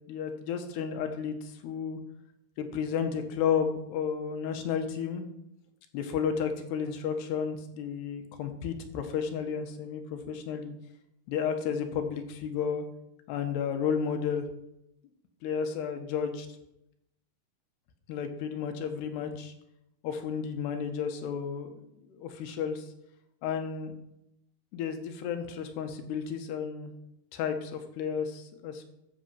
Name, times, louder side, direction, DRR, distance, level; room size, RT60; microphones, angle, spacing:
voice 1, 0.1-2.0 2.6-5.2 5.9-10.7 11.3-12.8 13.3-14.5 15.4-16.5 18.1-19.5 20.0-21.8 22.1-22.8 23.4-23.9 24.7-26.9 27.3-28.8, left 7 dB, 90° left, 6 dB, 3.3 m, -32 dB
13.5 x 7.4 x 5.7 m, 0.82 s
omnidirectional pair, 4.7 m